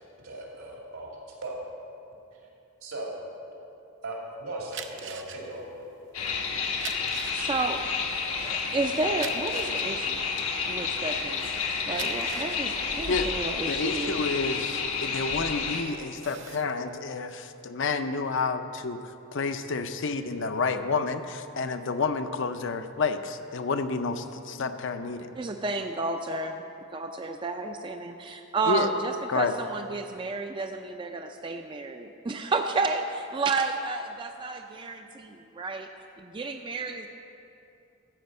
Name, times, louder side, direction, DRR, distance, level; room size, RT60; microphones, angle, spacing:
voice 1, 0.2-1.6 2.8-3.2 4.0-5.9, right 2 dB, 85° right, -2 dB, 2.5 m, -38 dB
sound 1, 4.6-11.2 11.7-15.6 16.0-16.7, right 8 dB, 55° right, 0.6 m, -42 dB
sound 2, 6.1-15.8, left 5 dB, 85° left, 1.2 m, -30 dB
voice 2, 6.3-6.6 7.3-7.8 8.4-10.2 10.7-11.5 11.9-14.2 25.4-26.6 26.9-35.9 36.2-37.1, right 3 dB, 25° right, 5 dB, 0.3 m, -31 dB
voice 3, 13.7-19.0 19.3-25.3 28.7-28.9 29.3-29.5, left 4 dB, 60° left, 9 dB, 0.5 m, -29 dB
13.5 x 5.1 x 7.7 m, 2.8 s
head